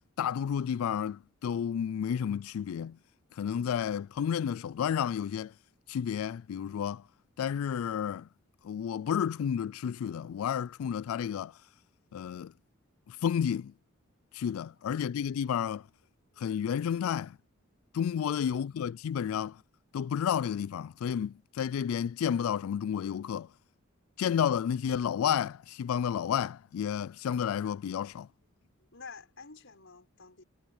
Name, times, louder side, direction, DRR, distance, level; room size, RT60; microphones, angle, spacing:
voice 1, 0.2-3.0 3.4-5.5 5.9-7.0 7.4-8.3 8.6-11.5 12.1-12.5 13.1-13.7 14.3-15.8 16.4-17.4 17.9-19.6 19.9-23.5 24.2-28.3, left 8 dB, 80° left, 0.3 m, -31 dB
voice 2, 28.9-30.4, left 4 dB, 60° left, 6.4 m, -51 dB
head